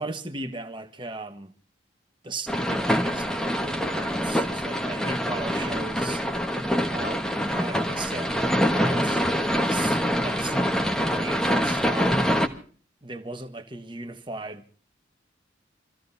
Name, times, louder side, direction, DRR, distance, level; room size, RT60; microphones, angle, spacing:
voice 1, 0.0-1.5 2.2-6.2 6.9-10.9 11.2-12.3 13.0-14.6, right 2 dB, 25° right, 1.3 m, -37 dB
sound 1, 2.5-12.5, equal, 5° left, 1.3 m, -25 dB
28.0 x 15.5 x 2.7 m
head